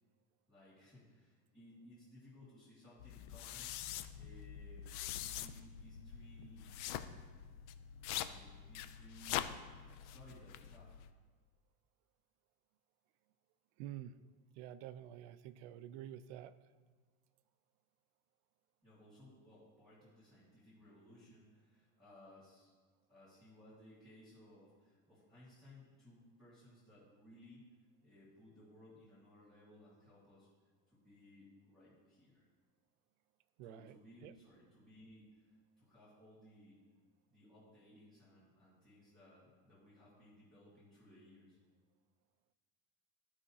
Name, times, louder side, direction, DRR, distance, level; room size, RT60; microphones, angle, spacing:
voice 1, 0.5-3.7 4.1-7.3 8.1-9.5 9.9-10.9 18.8-22.7 23.1-27.7 28.0-30.5 30.9-32.5 33.6-36.8 37.3-41.6, left 1 dB, ahead, -11 dB, 1.8 m, -61 dB
sound 1, 3.0-11.1, left 11 dB, 75° left, 0.5 m, -44 dB
voice 2, 13.8-14.2 14.6-16.5 33.6-34.3, right 11 dB, 70° right, 14 dB, 0.5 m, -49 dB
13.0 x 4.9 x 2.8 m, 1.4 s
cardioid pair, 180°, 35 cm